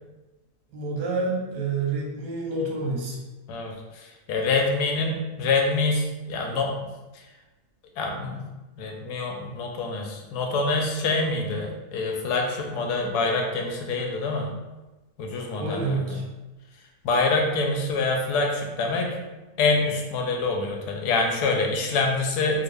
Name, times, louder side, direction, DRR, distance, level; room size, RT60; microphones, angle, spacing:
voice 1, 0.7-3.2 15.6-16.2, right 3 dB, 85° right, -2 dB, 1.4 m, -28 dB
voice 2, 3.5-6.9 7.1-7.3 8.0-8.4 8.8-14.5 15.2-16.0 17.0-19.1 19.6-22.6, left 3 dB, 90° left, 1 dB, 1.2 m, -26 dB
3.5 x 2.1 x 3.3 m, 1.1 s
omnidirectional pair, 1.7 m